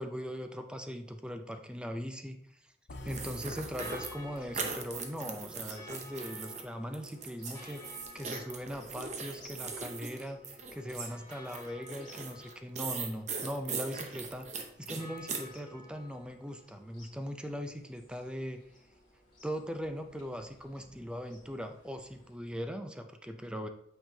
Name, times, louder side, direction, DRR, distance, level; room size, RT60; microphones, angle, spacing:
voice 1, 0.0-2.4 3.0-18.6 19.4-23.7, equal, 5° right, 7 dB, 0.4 m, -40 dB
sound 1, 2.9-7.0, left 1 dB, 60° left, 0.7 m, -50 dB
sound 2, 3.1-6.6 6.9-15.5, right 5 dB, 35° right, 0.8 m, -40 dB
sound 3, 3.4-22.3, left 2 dB, 25° left, 2.3 m, -54 dB
8.6 x 5.3 x 2.7 m, 0.76 s
head